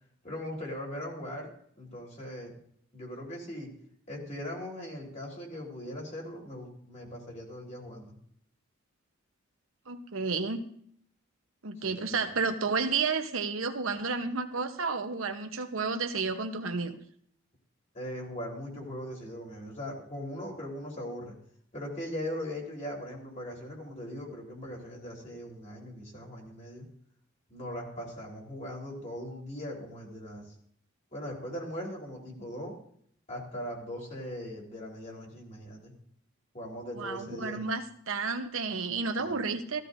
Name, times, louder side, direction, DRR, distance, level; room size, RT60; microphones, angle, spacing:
voice 1, 0.2-1.5 1.8-2.5 2.9-3.7 4.1-8.1 11.8-11.9 17.9-21.3 21.7-26.9 27.5-30.5 31.1-32.7 33.3-35.9 36.5-37.6 39.2-39.4, left 1 dB, 35° left, -1 dB, 3.6 m, -40 dB
voice 2, 9.9-10.6 11.6-17.0 37.0-39.8, right 4 dB, 80° right, 6 dB, 1.0 m, -31 dB
15.0 x 15.0 x 2.7 m, 0.62 s
head